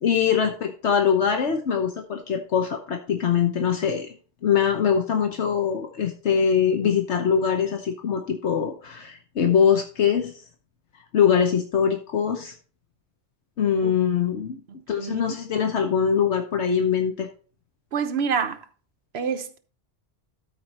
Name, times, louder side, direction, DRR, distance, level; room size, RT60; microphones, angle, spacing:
voice 1, 0.0-4.1 4.4-10.4 11.1-12.5 13.6-14.6 14.9-17.3, left 7 dB, 80° left, 1.2 m, -23 dB
voice 2, 14.7-15.2 17.9-18.6 19.1-19.6, right 6 dB, 65° right, 1.1 m, -27 dB
12.5 x 4.7 x 4.2 m
omnidirectional pair, 1.2 m